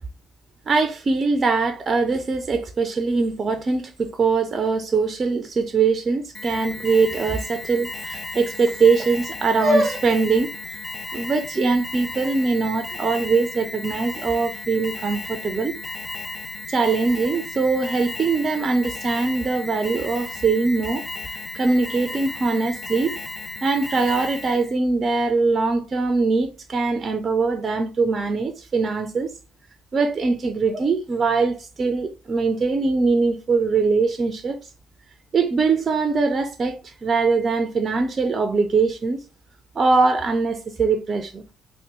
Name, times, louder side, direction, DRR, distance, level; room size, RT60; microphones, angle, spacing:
voice 1, 0.7-10.5 11.1-15.7 16.7-21.0 21.5-23.2 23.6-29.3 29.9-34.6 35.3-39.2 39.8-41.4, right 4 dB, 35° right, 0.4 m, -22 dB
Alarm, 6.3-24.7, left 3 dB, 15° left, 0.6 m, -34 dB
3.5 x 2.1 x 2.9 m
figure-of-eight pair, 50°, 0 cm